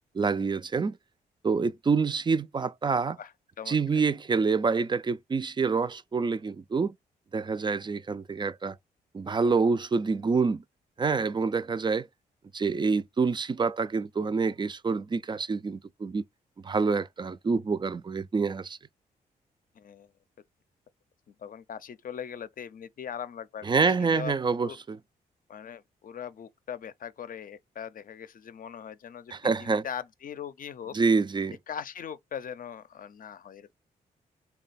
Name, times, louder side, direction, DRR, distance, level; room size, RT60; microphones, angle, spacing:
voice 1, 0.1-1.0 1.4-3.2 3.7-6.9 7.3-8.8 9.1-10.6 11.0-12.1 12.5-16.2 16.6-18.8 23.6-25.0 29.3-29.8 30.9-31.6, right 4 dB, 25° right, 0.4 m, -27 dB
voice 2, 3.6-4.0 19.7-20.1 21.3-24.3 24.6-24.8 25.5-29.3 29.6-31.0 31.7-33.7, left 8 dB, 50° left, 0.6 m, -40 dB
3.2 x 2.3 x 4.0 m
supercardioid pair, 50°, 18 cm